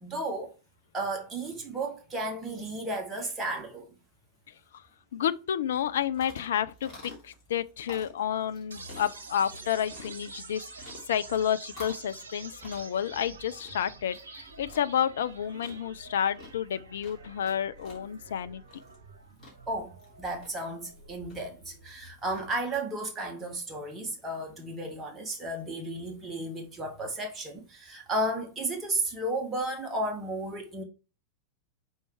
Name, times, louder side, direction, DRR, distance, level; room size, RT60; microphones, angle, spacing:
voice 1, 0.0-0.5 0.9-3.9 19.7-30.8, right 1 dB, 15° right, 1.3 m, -33 dB
voice 2, 5.1-10.7 11.1-18.6, left 9 dB, 60° left, 0.4 m, -30 dB
sound 1, 5.7-22.8, left 2 dB, 30° left, 3.1 m, -52 dB
sound 2, 8.7-22.7, right 3 dB, 70° right, 0.9 m, -48 dB
5.5 x 4.4 x 4.5 m
figure-of-eight pair, 90°, 0 cm